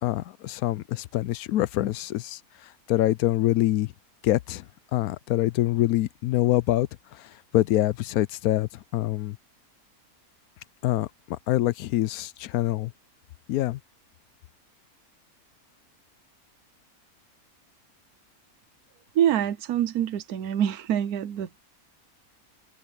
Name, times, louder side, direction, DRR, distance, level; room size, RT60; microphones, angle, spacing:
voice 1, 0.0-3.9 4.2-4.6 4.9-9.4 10.8-12.9 13.5-13.8, left 15 dB, 80° left, 1.0 m, -25 dB
voice 2, 19.1-21.6, right 10 dB, 85° right, 1.3 m, -25 dB
omnidirectional pair, 1.6 m